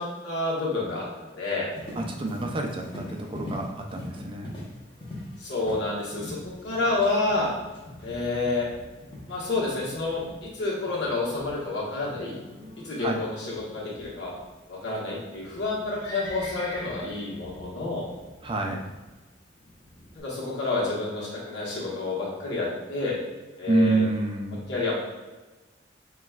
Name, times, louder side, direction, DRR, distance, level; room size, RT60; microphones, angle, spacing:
voice 1, 0.0-1.7 5.4-7.5 8.0-8.7 9.3-12.4 12.8-14.3 14.7-18.1 20.1-23.2 23.6-24.0 24.7-24.9, left 3 dB, 65° left, -6 dB, 1.3 m, -29 dB
Livestock farm animals working animals, 1.7-20.2, left 1 dB, 30° left, 0.9 m, -43 dB
voice 2, 2.0-4.5 13.0-13.2 18.4-18.8 23.7-24.7, right 2 dB, 25° right, 2 dB, 0.4 m, -27 dB
5.9 x 2.3 x 2.3 m, 1.2 s
head